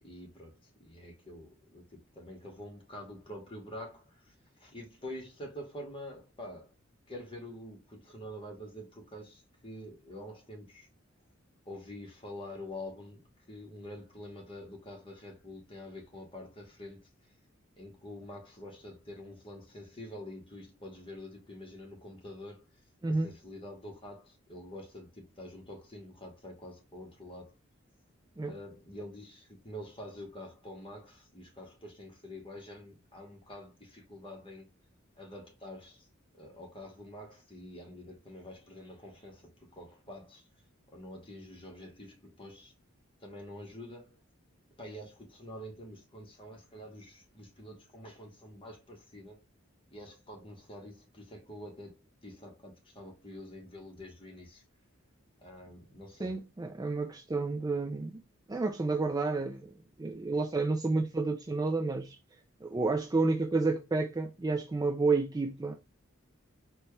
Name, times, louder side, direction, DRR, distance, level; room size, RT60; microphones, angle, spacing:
voice 1, 0.0-6.7 7.1-10.9 11.6-17.3 17.8-22.8 23.1-27.5 28.4-34.7 35.2-36.1 36.3-40.5 40.9-42.7 43.2-44.2 44.8-49.4 49.9-54.6 55.4-56.4, left 1 dB, 25° left, 1.1 m, -47 dB
voice 2, 56.2-58.1 58.5-59.7 60.0-62.2 62.6-65.8, right 3 dB, 20° right, 0.3 m, -30 dB
4.2 x 2.2 x 3.1 m
head